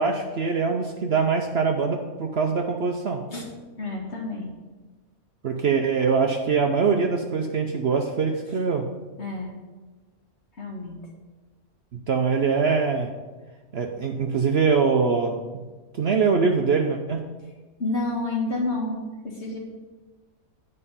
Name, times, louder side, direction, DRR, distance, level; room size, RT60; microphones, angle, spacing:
voice 1, 0.0-3.2 5.4-8.9 12.1-13.1 13.7-15.4 15.9-17.2, right 5 dB, 55° right, 3 dB, 0.8 m, -23 dB
voice 2, 3.8-4.5 9.2-9.6 10.6-11.0 17.8-19.6, left 2 dB, 50° left, -1 dB, 2.0 m, -29 dB
9.9 x 5.4 x 5.6 m, 1.3 s
omnidirectional pair, 1.5 m